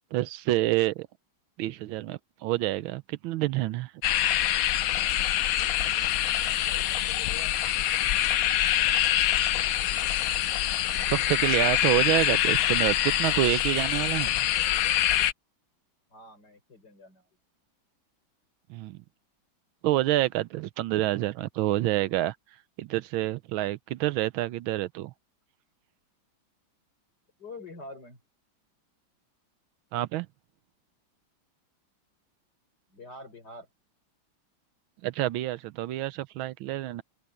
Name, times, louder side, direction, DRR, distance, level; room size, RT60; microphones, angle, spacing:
voice 1, 0.1-1.1 1.6-3.9 11.1-14.5 18.7-19.0 19.8-22.3 22.8-25.1 29.9-30.3 35.0-37.0, right 15 dB, 85° right, 1.5 m, -28 dB
sound 1, 4.0-15.3, left 12 dB, 75° left, 0.8 m, -25 dB
voice 2, 6.6-7.6 16.1-17.3 27.4-28.2 32.9-33.7, left 2 dB, 55° left, 6.3 m, -46 dB
open air
omnidirectional pair, 2.2 m